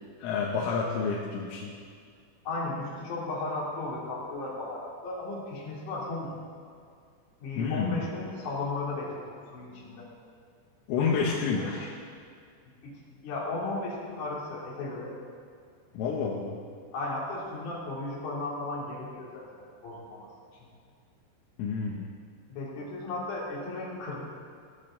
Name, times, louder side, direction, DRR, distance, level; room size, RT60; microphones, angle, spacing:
voice 1, 0.2-1.7 7.6-8.1 10.9-11.9 15.9-16.6 21.6-22.1, left 5 dB, 80° left, -3 dB, 3.6 m, -29 dB
voice 2, 2.4-6.3 7.4-10.1 11.0-11.7 12.8-12.9 13.2-15.1 16.9-20.3 22.5-24.2, left 2 dB, 45° left, -5 dB, 3.8 m, -35 dB
16.0 x 13.5 x 3.8 m, 2.2 s
omnidirectional pair, 5.9 m